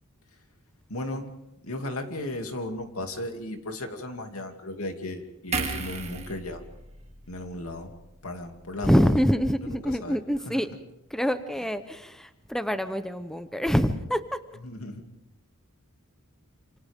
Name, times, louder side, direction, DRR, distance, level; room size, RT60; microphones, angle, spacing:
voice 1, 0.9-1.3 1.6-6.6 7.3-7.9 8.2-9.1 9.6-10.2 10.5-10.6 14.6-15.0, left 1 dB, 80° left, 4 dB, 2.7 m, -35 dB
sound 1, 5.5-8.9 9.2-9.4, right 4 dB, 30° right, 2.0 m, -36 dB
voice 2, 8.8-10.7 11.1-14.4, equal, ahead, 10 dB, 0.8 m, -25 dB
28.5 x 27.5 x 3.6 m, 0.88 s
head